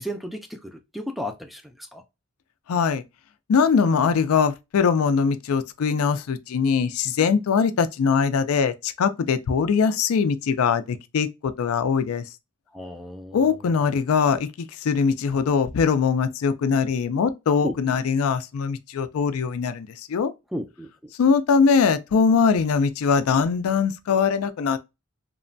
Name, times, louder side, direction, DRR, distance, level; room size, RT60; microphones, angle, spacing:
voice 1, 0.0-2.0 12.7-13.6 17.6-17.8 20.5-21.1, equal, ahead, 0.3 m, -34 dB
voice 2, 2.7-3.0 3.5-12.2 13.3-20.3 21.2-24.8, left 6 dB, 85° left, 0.4 m, -22 dB
3.0 x 2.2 x 2.5 m
head